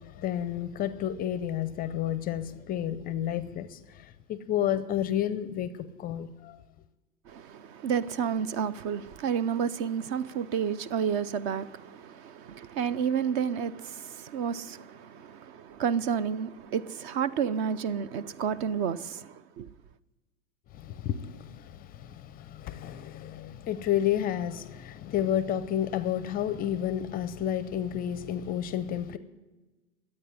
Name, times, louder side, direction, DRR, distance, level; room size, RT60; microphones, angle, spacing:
voice 1, 0.0-3.8 4.3-6.6 20.7-29.2, left 10 dB, 25° left, 0.5 m, -31 dB
voice 2, 7.3-19.7, right 7 dB, 40° right, 0.6 m, -31 dB
12.5 x 8.7 x 9.5 m
hypercardioid pair, 125°, 40 cm